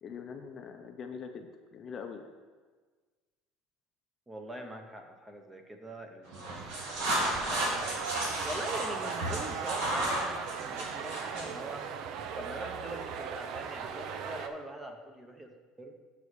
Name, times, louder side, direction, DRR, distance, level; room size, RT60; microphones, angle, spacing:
voice 1, 0.0-2.3, left 6 dB, 30° left, 5 dB, 0.5 m, -43 dB
voice 2, 4.3-11.9 12.4-15.5 15.8-16.0, right 1 dB, 10° right, 4 dB, 0.7 m, -43 dB
sound 1, 6.3-11.5, right 1 dB, 75° right, 2.4 m, -33 dB
sound 2, 6.5-14.5, right 6 dB, 50° right, 0.5 m, -38 dB
6.9 x 4.7 x 6.5 m, 1.4 s
cardioid pair, 155°, 0 cm